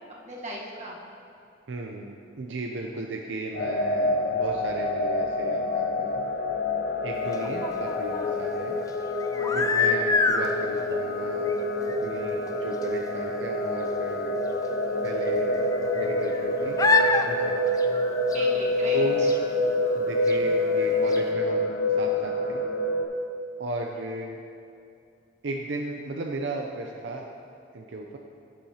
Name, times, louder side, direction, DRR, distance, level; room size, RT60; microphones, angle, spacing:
voice 1, 0.2-1.0 9.3-9.6 18.3-19.3, right 1 dB, 40° right, -3 dB, 1.3 m, -37 dB
voice 2, 1.7-6.2 7.0-8.8 9.5-14.4 15.0-15.6 15.9-16.8 17.2-17.6 18.9-19.3 19.9-22.6 23.6-24.4 25.4-27.3 27.7-28.2, right 2 dB, 70° right, 1 dB, 0.5 m, -35 dB
sound 1, 3.5-23.0, left 1 dB, 55° left, 0.7 m, -27 dB
sound 2, 7.3-8.3 9.2-10.5 11.5-11.6 11.9-12.0 12.5-12.6 12.8-12.9 14.6-14.7 15.5-16.4 16.8-17.3 17.7-18.5 19.3-19.4 20.3-20.4 20.8-20.9 21.1-21.2, left 4 dB, 20° left, 0.3 m, -25 dB
10.5 x 8.3 x 2.9 m, 2.5 s
head